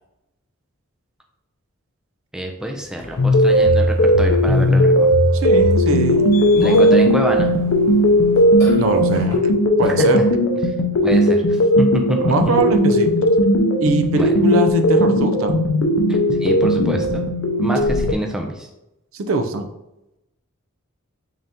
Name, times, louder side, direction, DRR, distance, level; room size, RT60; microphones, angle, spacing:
voice 1, 2.3-5.1 6.6-7.5 9.8-10.1 10.7-10.8 11.0-12.2 14.1-14.3 16.1-17.2 17.6-18.7, equal, 5° right, 2 dB, 0.3 m, -26 dB
Burping eructation, 3.0-9.4, left 2 dB, 15° left, 1.1 m, -36 dB
sound 1, 3.2-18.1, equal, 70° left, 0.4 m, -16 dB
voice 2, 5.3-7.0 8.8-9.4 9.8-10.2 12.2-13.1 13.8-15.6 19.1-19.7, right 2 dB, 70° right, 7 dB, 0.4 m, -21 dB
3.7 x 2.7 x 3.4 m, 0.89 s
head